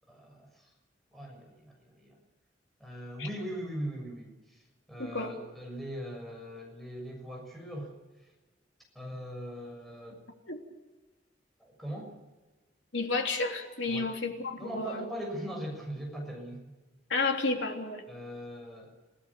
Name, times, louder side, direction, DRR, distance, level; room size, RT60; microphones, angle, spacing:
voice 1, 0.1-0.7 1.1-2.1 2.8-7.9 8.2-8.3 8.9-10.2 11.6-12.1 13.9-14.1 14.6-16.6 18.1-18.9, equal, ahead, 0 dB, 6.7 m, -40 dB
voice 2, 5.0-5.3 10.5-10.6 12.9-15.0 17.1-18.0, left 3 dB, 90° left, 3 dB, 3.3 m, -31 dB
28.0 x 18.0 x 7.2 m, 1.2 s
head